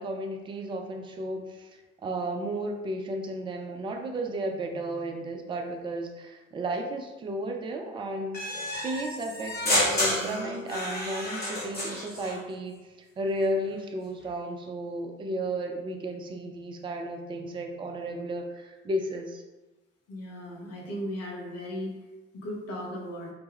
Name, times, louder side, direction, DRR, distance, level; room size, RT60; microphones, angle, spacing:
voice 1, 0.0-1.7 2.0-19.4, right 1 dB, 15° right, 3 dB, 0.3 m, -33 dB
sound 1, 8.3-12.4, left 1 dB, 30° left, 1.1 m, -30 dB
sound 2, 10.2-12.7, left 2 dB, 85° left, 0.7 m, -45 dB
voice 2, 20.1-21.9 22.3-23.3, equal, 50° left, -1 dB, 0.7 m, -36 dB
2.1 x 2.0 x 3.3 m, 1.1 s
figure-of-eight pair, 45°, 33 cm